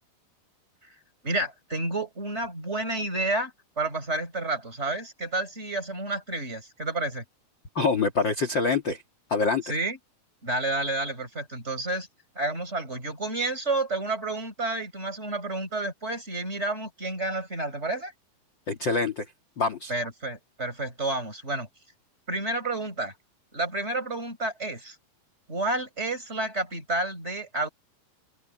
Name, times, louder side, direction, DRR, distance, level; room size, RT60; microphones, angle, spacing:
voice 1, 1.2-7.2 9.6-10.0 10.4-12.1 12.3-18.1 19.9-21.7 22.3-23.1 23.5-24.9 25.5-27.7, right 2 dB, 15° right, 4.7 m, -30 dB
voice 2, 7.8-9.0 9.3-9.6 18.7-19.3 19.6-19.9, left 4 dB, 40° left, 2.3 m, -25 dB
open air
omnidirectional pair, 4.2 m